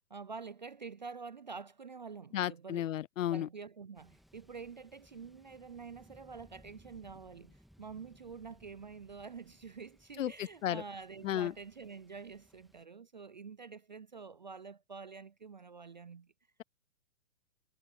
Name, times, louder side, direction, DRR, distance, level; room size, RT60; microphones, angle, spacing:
voice 1, 0.1-2.9 3.3-16.3, right 5 dB, 35° right, 0.4 m, -47 dB
voice 2, 2.3-3.5 10.2-10.8 11.2-11.5, left 11 dB, 55° left, 0.7 m, -33 dB
Thunder, 3.9-12.8, equal, ahead, 1.8 m, -64 dB
hypercardioid pair, 140°, 46 cm